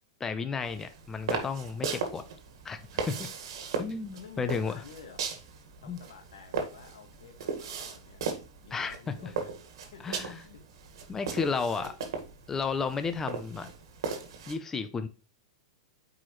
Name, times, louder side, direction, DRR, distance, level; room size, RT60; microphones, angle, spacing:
voice 1, 0.2-2.2 2.6-2.8 3.1-3.3 3.8-4.8 5.9-6.0 8.7-9.0 9.2-9.3 10.0-10.4 11.1-11.9 12.5-13.7 14.5-15.1, left 5 dB, 15° left, 9 dB, 0.6 m, -32 dB
sound 1, 0.6-14.5, right 5 dB, 70° right, 1.8 m, -38 dB
voice 2, 3.6-5.2 5.8-8.2 8.6-9.5 9.9-10.6 11.5-11.9, left 6 dB, 85° left, 5 dB, 1.8 m, -51 dB
8.3 x 4.8 x 3.2 m, 0.35 s
hypercardioid pair, 130°, 3 cm